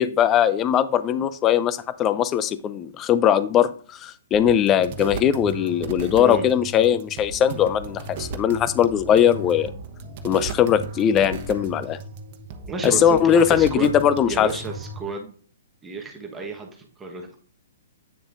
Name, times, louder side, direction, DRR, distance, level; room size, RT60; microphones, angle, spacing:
voice 1, 0.0-9.7 10.2-12.0 12.8-14.5, left 9 dB, 25° left, 14 dB, 0.6 m, -20 dB
sound 1, 4.3-15.0, right 3 dB, 45° right, 1.2 m, -35 dB
voice 2, 12.7-14.0 14.3-15.4 15.8-17.3, right 4 dB, 15° right, 1 dB, 1.2 m, -32 dB
9.0 x 6.9 x 2.6 m, 0.43 s
figure-of-eight pair, 120°, 0 cm